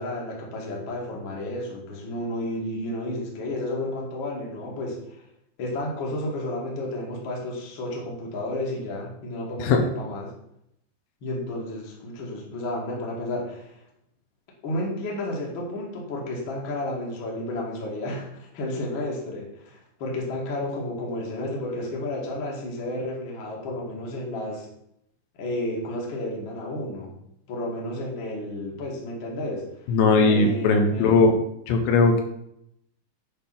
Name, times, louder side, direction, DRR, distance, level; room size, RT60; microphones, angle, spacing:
voice 1, 0.0-5.2 5.6-10.3 11.2-13.7 14.6-24.7 25.4-27.1 27.5-29.7 30.2-31.1, left 1 dB, 45° left, -2 dB, 1.6 m, -32 dB
voice 2, 29.9-31.4 31.7-32.2, left 3 dB, 75° left, 4 dB, 2.9 m, -19 dB
8.7 x 5.0 x 5.7 m, 0.77 s
omnidirectional pair, 5.4 m